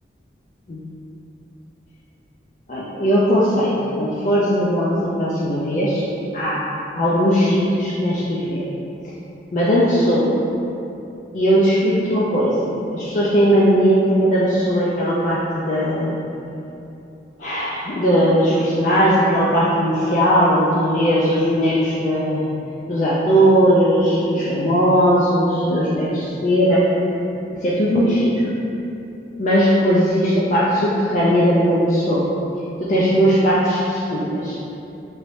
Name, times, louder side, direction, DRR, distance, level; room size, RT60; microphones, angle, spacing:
voice 1, 2.7-3.7 4.0-6.0 6.3-6.6 6.9-8.6 9.5-10.3 11.3-16.2 17.4-22.4 22.9-26.8 27.6-28.5 29.4-32.3 32.8-34.6, equal, 45° left, -8 dB, 0.3 m, -18 dB
3.0 x 2.6 x 3.1 m, 2.9 s
head